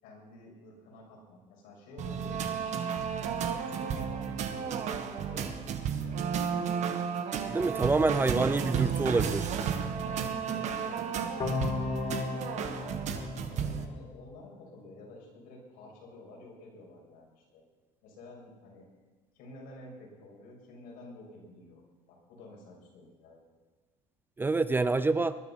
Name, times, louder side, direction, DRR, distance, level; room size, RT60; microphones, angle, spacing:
voice 1, 0.0-2.8 3.6-6.4 9.9-11.7 12.1-17.6 18.0-18.9 19.3-21.8 22.1-23.4, left 2 dB, 85° left, -2 dB, 6.5 m, -50 dB
sound 1, 2.0-13.8, right 7 dB, 50° right, 1.5 m, -32 dB
voice 2, 7.5-9.5 24.4-25.4, right 3 dB, 15° right, 13 dB, 0.5 m, -27 dB
sound 2, 11.4-14.4, left 5 dB, 30° left, 1.0 m, -36 dB
20.0 x 11.0 x 5.7 m, 1.3 s
cardioid pair, 140°, 15 cm